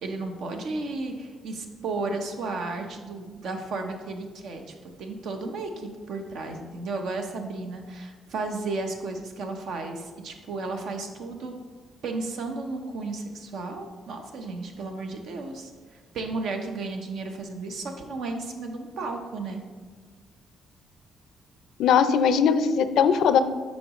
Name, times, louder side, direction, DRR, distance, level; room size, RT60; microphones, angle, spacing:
voice 1, 0.0-4.6 5.0-11.5 12.0-15.7 16.1-19.6, right 3 dB, 75° right, 4 dB, 0.9 m, -33 dB
voice 2, 21.8-23.4, left 7 dB, 80° left, 11 dB, 0.4 m, -20 dB
8.4 x 5.3 x 3.0 m, 1.5 s
cardioid pair, 90°, 0 cm